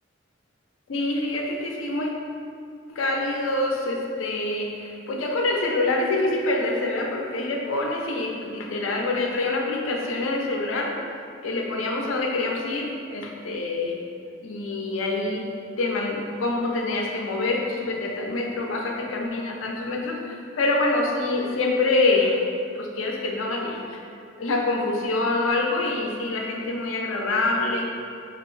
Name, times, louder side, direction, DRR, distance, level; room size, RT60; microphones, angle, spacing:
voice 1, 0.9-2.1 2.9-10.9 11.4-13.9 14.4-15.5 15.8-22.4 22.7-24.0 24.4-27.8, left 2 dB, 80° left, 0 dB, 0.5 m, -26 dB
6.0 x 2.5 x 3.1 m, 2.4 s
head